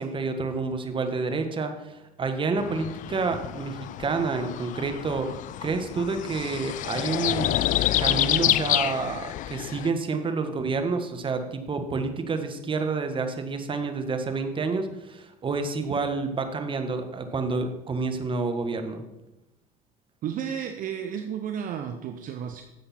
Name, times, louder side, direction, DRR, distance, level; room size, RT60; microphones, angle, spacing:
voice 1, 0.0-5.3 5.6-7.5 8.0-19.0, right 4 dB, 25° right, 7 dB, 1.3 m, -29 dB
sound 1, 2.6-9.9, left 13 dB, 45° left, 0.4 m, -28 dB
voice 2, 20.2-22.6, right 8 dB, 45° right, 6 dB, 0.8 m, -32 dB
10.5 x 7.6 x 4.3 m, 0.95 s
hypercardioid pair, 85°, 19 cm